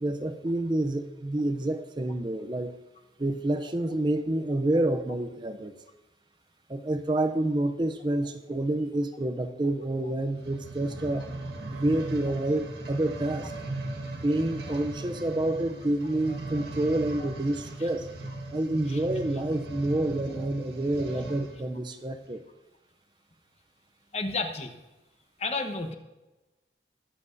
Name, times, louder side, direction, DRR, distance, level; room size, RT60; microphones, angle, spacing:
voice 1, 0.0-2.7 3.2-5.7 6.7-11.3 11.7-13.5 14.1-18.1 18.5-22.4, right 1 dB, 25° right, 7 dB, 0.5 m, -28 dB
sound 1, 10.3-21.6 22.2-22.3, right 2 dB, 75° right, 1.6 m, -38 dB
voice 2, 16.3-16.6 18.9-19.0 24.1-24.7 25.4-25.9, left 3 dB, 35° left, 6 dB, 1.0 m, -32 dB
22.0 x 7.7 x 2.6 m, 1.1 s
head